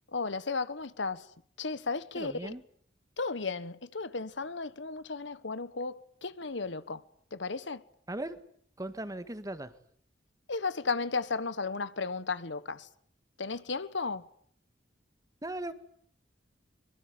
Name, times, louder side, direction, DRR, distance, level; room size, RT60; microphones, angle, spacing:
voice 1, 0.1-1.3 1.6-2.5 3.2-7.0 7.3-7.8 10.5-12.9 13.4-14.3, left 4 dB, 75° left, 1.3 m, -34 dB
voice 2, 2.1-2.6 8.1-8.4 8.8-9.7 15.4-15.7, right 1 dB, 20° right, 1.6 m, -38 dB
24.0 x 22.5 x 9.6 m
head